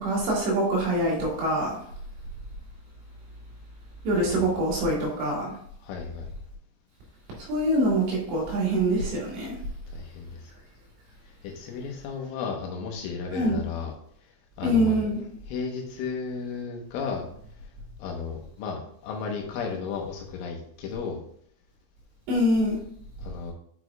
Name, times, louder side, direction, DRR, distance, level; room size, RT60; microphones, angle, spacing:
voice 1, 0.0-1.7 4.0-5.5 7.5-9.6 13.3-13.6 14.6-15.2 22.3-22.8, right 1 dB, 65° right, -3 dB, 4.1 m, -24 dB
voice 2, 5.8-6.3 9.9-10.4 11.4-13.9 14.6-15.0 15.5-17.3 18.0-21.2 23.2-23.5, left 5 dB, 80° left, 1 dB, 3.5 m, -34 dB
8.2 x 6.3 x 2.3 m, 0.65 s
omnidirectional pair, 5.6 m